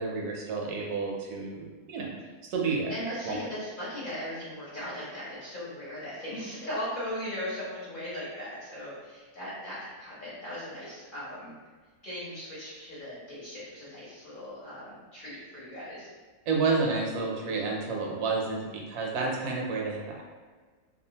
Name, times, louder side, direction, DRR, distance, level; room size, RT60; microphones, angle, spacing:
voice 1, 0.0-2.1 2.4-2.9 3.2-3.4 16.5-20.2, right 4 dB, 80° right, -1 dB, 1.1 m, -30 dB
voice 2, 2.9-11.5 12.0-16.1, equal, 40° left, -10 dB, 0.8 m, -38 dB
2.8 x 2.3 x 2.8 m, 1.4 s
omnidirectional pair, 1.6 m